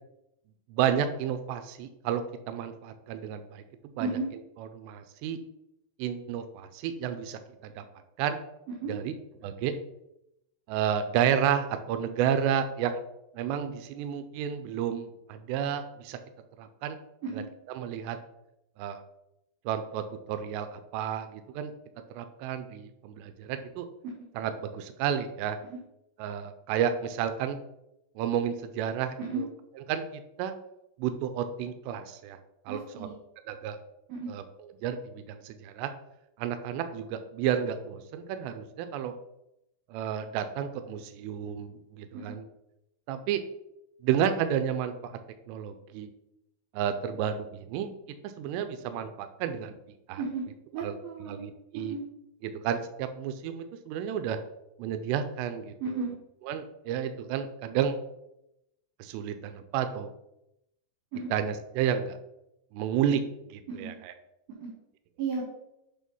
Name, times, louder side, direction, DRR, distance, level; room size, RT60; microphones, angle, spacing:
voice 1, 0.7-3.6 4.0-4.2 4.7-5.4 6.0-7.8 8.2-8.4 8.9-9.1 9.4-9.7 10.7-13.0 13.4-16.2 16.6-17.0 17.3-17.4 17.8-18.2 18.8-19.0 19.7-21.7 22.1-23.9 24.4-25.6 26.2-27.6 28.2-29.5 29.9-30.5 31.0-32.4 32.7-33.1 33.5-33.8 34.3-34.4 34.8-35.9 36.4-39.1 39.9-42.4 43.1-43.4 44.0-45.1 45.5-46.1 46.7-47.9 48.2-49.8 50.1-50.2 50.8-50.9 51.3-52.0 52.4-54.4 54.8-55.7 56.5-58.0 59.0-60.1 61.3-62.2 62.7-63.2 63.5-64.1, right 9 dB, 90° right, 9 dB, 2.5 m, -31 dB
voice 2, 32.7-33.2 34.1-34.3 42.3-42.4 50.2-50.5 50.7-51.4 51.7-52.0 55.8-56.1 61.1-61.3 63.7-63.9 64.6-64.7 65.2-65.4, right 4 dB, 75° right, -1 dB, 2.2 m, -34 dB
8.6 x 3.7 x 5.4 m, 0.84 s
omnidirectional pair, 5.7 m